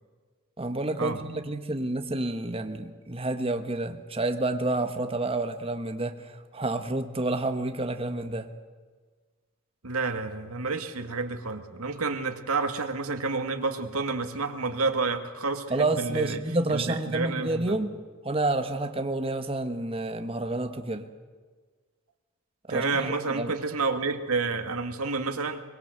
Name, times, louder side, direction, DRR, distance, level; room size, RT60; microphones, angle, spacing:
voice 1, 0.6-8.5 15.7-17.9 18.2-21.1 22.7-23.5, right 2 dB, 25° right, 7 dB, 1.3 m, -29 dB
voice 2, 9.8-16.4 16.7-17.8 22.7-25.6, right 4 dB, 85° right, 6 dB, 2.0 m, -29 dB
23.5 x 22.5 x 7.9 m, 1.5 s
head